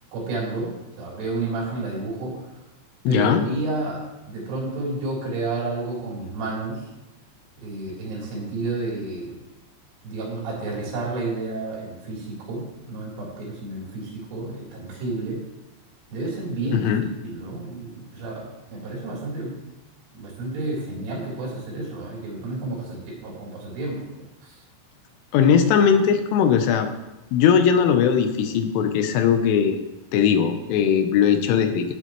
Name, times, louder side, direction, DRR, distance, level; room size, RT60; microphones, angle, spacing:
voice 1, 0.1-2.5 3.1-6.9 7.6-9.4 10.0-15.4 16.1-19.6 20.1-24.1 24.4-24.6, right 2 dB, 80° right, -4 dB, 6.0 m, -31 dB
voice 2, 3.1-3.5 16.7-17.0 25.3-26.9 27.3-29.8 30.1-31.9, left 7 dB, 85° left, 7 dB, 3.4 m, -19 dB
15.0 x 8.1 x 3.1 m, 1.0 s
omnidirectional pair, 5.6 m